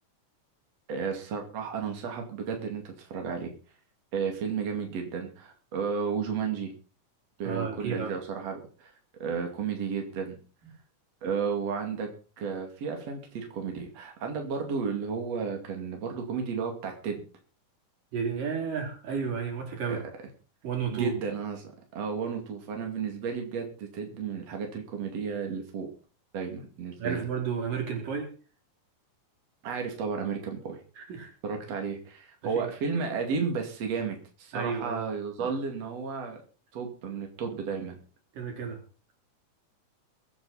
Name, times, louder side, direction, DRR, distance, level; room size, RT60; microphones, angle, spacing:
voice 1, 0.9-3.5 4.1-6.7 7.4-8.9 9.2-10.4 11.2-12.1 12.4-17.2 19.9-20.1 20.9-21.6 21.9-25.9 26.3-27.2 29.6-30.8 31.4-36.4 36.7-38.0, right 5 dB, 50° right, 3 dB, 3.5 m, -33 dB
voice 2, 7.4-8.1 18.1-20.0 20.6-21.1 27.0-28.3 31.0-31.3 32.4-32.7 34.5-35.0 35.4-35.5 38.3-38.8, right 6 dB, 85° right, 2 dB, 5.4 m, -32 dB
23.0 x 8.5 x 4.2 m, 0.37 s
omnidirectional pair, 3.7 m